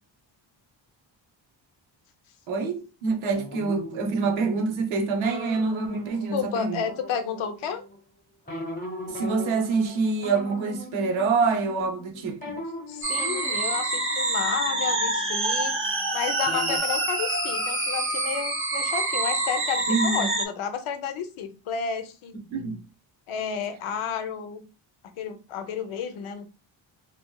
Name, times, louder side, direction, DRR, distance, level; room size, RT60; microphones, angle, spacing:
voice 1, 2.5-6.8 9.1-12.4 19.9-20.3 22.5-22.8, right 4 dB, 75° right, 0.8 m, -26 dB
sound 1, 3.3-8.0 8.5-16.1 16.4-16.8, left 1 dB, 20° left, 0.8 m, -40 dB
voice 2, 6.3-7.8 12.9-22.3 23.3-24.6 25.0-26.5, left 7 dB, 90° left, 0.6 m, -31 dB
sound 2, 13.0-20.5, right 2 dB, 25° right, 0.6 m, -26 dB
3.0 x 2.7 x 2.2 m
wide cardioid pair, 135°, 47 cm